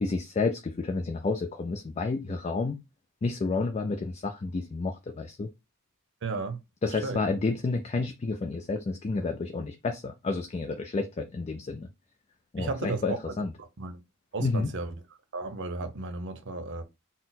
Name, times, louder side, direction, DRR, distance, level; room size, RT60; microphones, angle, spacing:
voice 1, 0.0-2.8 3.2-5.5 6.8-11.9 12.5-13.5 14.4-14.7, left 3 dB, 30° left, 0.3 m, -30 dB
voice 2, 6.2-6.6 6.9-7.2 12.6-14.0 14.3-14.9 15.3-16.8, right 3 dB, 55° right, 0.7 m, -34 dB
4.1 x 2.0 x 4.0 m
head